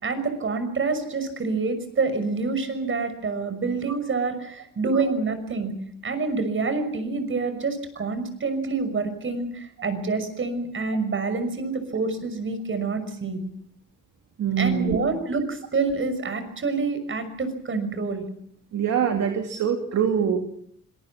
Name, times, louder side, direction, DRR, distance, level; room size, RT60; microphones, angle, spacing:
voice 1, 0.0-5.7 6.0-13.4 14.6-18.2, right 4 dB, 40° right, 10 dB, 5.9 m, -27 dB
voice 2, 14.4-15.0 18.7-20.4, right 8 dB, 60° right, 4 dB, 2.7 m, -24 dB
26.0 x 19.5 x 7.2 m, 0.68 s
cardioid pair, 90°, 30 cm